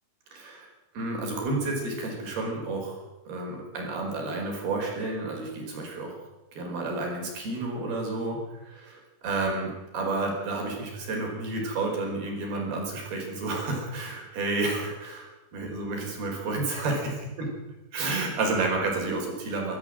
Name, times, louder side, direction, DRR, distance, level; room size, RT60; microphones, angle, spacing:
voice 1, 0.3-0.7 0.9-3.0 3.3-6.2 6.5-17.0 17.4-17.5 17.9-19.8, right 3 dB, 85° right, 0 dB, 6.8 m, -30 dB
25.0 x 13.5 x 7.8 m, 1.1 s
omnidirectional pair, 4.3 m